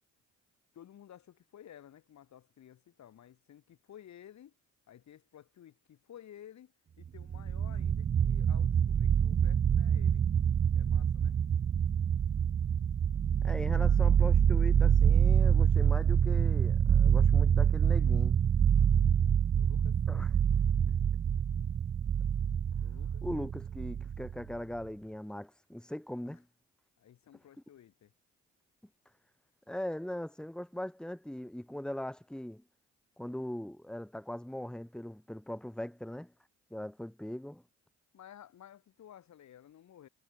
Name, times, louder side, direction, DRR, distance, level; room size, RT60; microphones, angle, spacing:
voice 1, 0.7-4.5 4.9-10.3 10.7-11.4 19.5-20.0 22.7-23.2 26.2-26.4 27.0-28.1 38.1-40.1, left 10 dB, 65° left, 5.0 m, -54 dB
sound 1, 7.2-24.5, right 8 dB, 30° right, 0.4 m, -26 dB
voice 2, 13.4-18.4 20.1-20.3 23.2-26.5 29.7-32.6 33.2-36.3 36.7-37.6, left 1 dB, 5° left, 2.7 m, -40 dB
cardioid pair, 90°, 30 cm